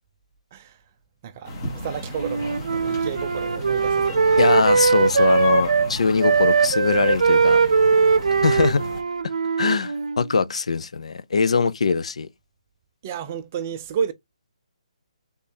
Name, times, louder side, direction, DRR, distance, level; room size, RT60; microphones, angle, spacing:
voice 1, 1.2-4.4 4.7-4.9 8.1-8.3 8.5-8.6 13.0-14.1, right 8 dB, 15° right, 0.4 m, -32 dB
sound 1, 1.4-9.0, left 1 dB, 20° left, 1.3 m, -33 dB
Wind instrument woodwind instrument, 2.2-5.9 6.2-10.3, right 5 dB, 75° right, 0.6 m, -20 dB
voice 2, 4.4-7.6 8.4-8.8 9.2-9.3 9.6-12.3, left 5 dB, 60° left, 0.6 m, -22 dB
4.3 x 3.5 x 3.3 m
hypercardioid pair, 180°, 4 cm